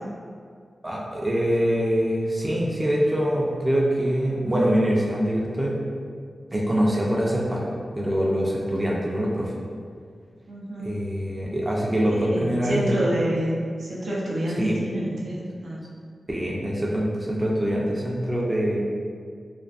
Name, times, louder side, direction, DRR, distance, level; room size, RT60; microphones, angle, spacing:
voice 1, 0.8-5.8 6.5-7.7 7.9-9.5 10.8-13.0 14.6-14.8 16.3-18.8, equal, 20° right, -4 dB, 0.3 m, -24 dB
voice 2, 10.5-10.9 12.1-13.5 13.8-15.8, right 1 dB, 90° right, -5 dB, 0.5 m, -28 dB
2.4 x 2.4 x 2.3 m, 2.1 s
wide cardioid pair, 120°, 0 cm